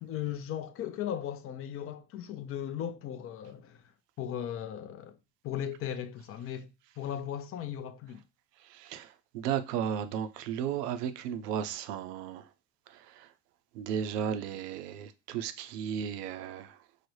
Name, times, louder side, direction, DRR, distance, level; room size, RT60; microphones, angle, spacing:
voice 1, 0.0-3.8 4.2-5.2 5.4-6.7 7.0-8.2, left 10 dB, 30° left, 0.4 m, -37 dB
voice 2, 8.7-12.4 12.9-13.3 13.7-16.8, right 9 dB, 75° right, 0.6 m, -35 dB
4.7 x 2.0 x 3.1 m
hypercardioid pair, 75°, 48 cm